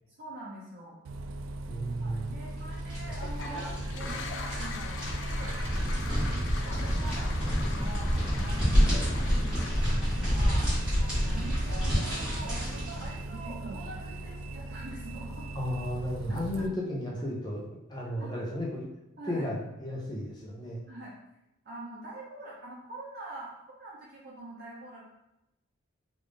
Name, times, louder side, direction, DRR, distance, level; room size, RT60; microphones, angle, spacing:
voice 1, 0.2-1.0 2.0-5.6 6.2-8.1 8.4-10.7 11.0-12.5 13.0-15.5 16.6-16.7 18.2-18.4 19.2-19.5 20.9-21.1 21.6-23.5 23.8-25.1, right 1 dB, 50° right, -6 dB, 0.7 m, -45 dB
Bus, 1.1-16.7, right 2 dB, 85° right, 0.3 m, -39 dB
voice 2, 1.7-2.3 15.5-18.8 19.3-20.8, equal, 20° left, -2 dB, 0.7 m, -34 dB
sound 1, 2.5-13.2, equal, 5° right, 1.3 m, -29 dB
Toilet flush, 3.1-12.0, left 5 dB, 65° left, 0.3 m, -43 dB
3.3 x 2.5 x 3.4 m, 0.88 s
head